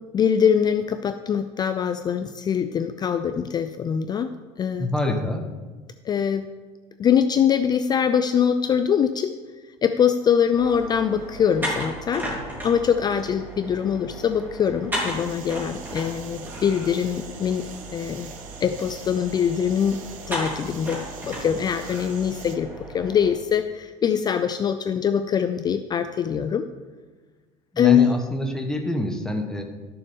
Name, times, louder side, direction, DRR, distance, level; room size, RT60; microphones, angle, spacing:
voice 1, 0.1-5.2 6.1-6.5 7.0-9.3 9.8-12.3 12.6-17.7 17.9-18.3 18.6-20.0 20.3-26.7 27.8-28.1, left 8 dB, 30° left, 10 dB, 0.4 m, -23 dB
voice 2, 4.8-5.4 27.7-29.6, left 1 dB, 5° left, 3 dB, 1.1 m, -26 dB
sound 1, 10.5-23.3, right 1 dB, 15° right, 3.3 m, -35 dB
sound 2, 14.9-22.6, right 8 dB, 65° right, 1.0 m, -45 dB
13.0 x 6.8 x 3.6 m, 1.3 s
supercardioid pair, 120°, 15 cm